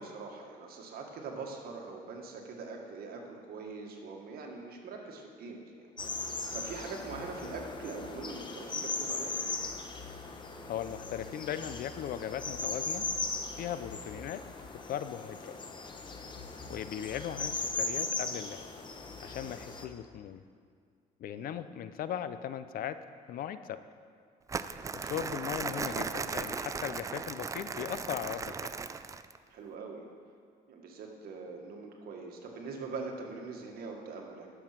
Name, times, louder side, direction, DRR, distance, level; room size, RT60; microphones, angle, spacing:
voice 1, 0.0-5.9 6.2-9.3 21.3-21.6 29.5-30.1 30.7-34.5, right 4 dB, 65° right, 1 dB, 1.8 m, -43 dB
sound 1, 6.0-19.9, left 3 dB, 30° left, 1.0 m, -38 dB
voice 2, 10.7-13.1 13.6-14.4 14.9-15.6 16.7-18.7 19.2-20.4 21.2-23.0 23.3-23.8 24.9-28.7, left 10 dB, 60° left, 13 dB, 0.5 m, -38 dB
Crumpling crinkling, 24.5-29.4, right 5 dB, 20° right, 0.3 m, -37 dB
11.0 x 7.1 x 5.9 m, 2.1 s
cardioid pair, 110°, 17 cm